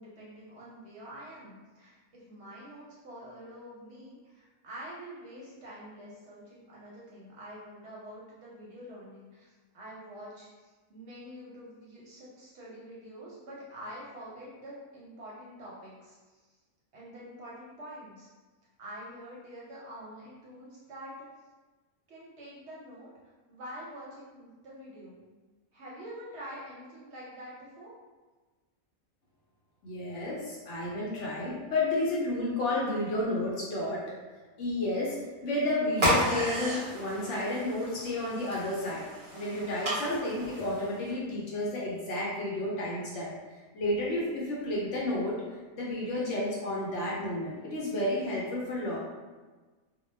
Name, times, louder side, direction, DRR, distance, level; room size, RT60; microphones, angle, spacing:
voice 1, 0.0-16.6 16.9-18.3 18.8-21.2 22.1-23.1 23.5-25.2 25.7-27.9, equal, 60° right, -6 dB, 0.8 m, -46 dB
voice 2, 29.8-34.0 34.6-35.2 35.4-39.1 39.3-43.3 43.7-45.4 45.7-49.0, left 1 dB, 65° left, -5 dB, 0.8 m, -31 dB
sound 1, 35.9-41.1, equal, 30° right, 0.5 m, -32 dB
2.2 x 2.1 x 3.1 m, 1.3 s
omnidirectional pair, 1.5 m